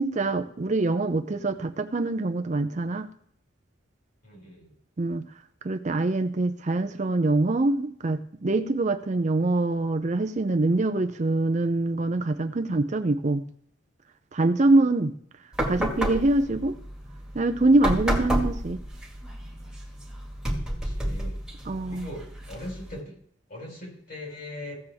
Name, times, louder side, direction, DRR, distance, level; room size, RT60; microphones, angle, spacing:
voice 1, 0.0-3.1 5.0-5.3 5.6-13.4 14.3-15.1 15.6-16.8 17.3-18.8 21.6-22.1, right 2 dB, 40° right, 8 dB, 0.5 m, -24 dB
voice 2, 4.2-4.7 20.6-21.4 21.9-23.1 23.5-24.8, left 1 dB, 45° left, -1 dB, 4.2 m, -40 dB
sound 1, 15.5-23.0, equal, 5° right, 1.8 m, -31 dB
16.0 x 7.1 x 3.5 m, 0.65 s
head